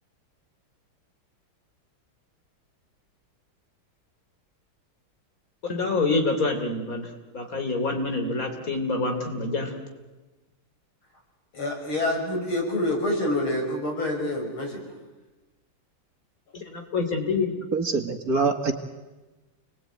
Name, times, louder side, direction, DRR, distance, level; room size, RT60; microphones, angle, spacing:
voice 1, 5.6-9.8 16.5-17.6, left 3 dB, 40° left, 4 dB, 3.8 m, -27 dB
voice 2, 11.5-14.8, left 1 dB, 85° left, 0 dB, 6.9 m, -27 dB
voice 3, 17.7-18.7, right 4 dB, 45° right, 5 dB, 2.3 m, -24 dB
29.0 x 21.0 x 9.4 m, 1.2 s
omnidirectional pair, 2.2 m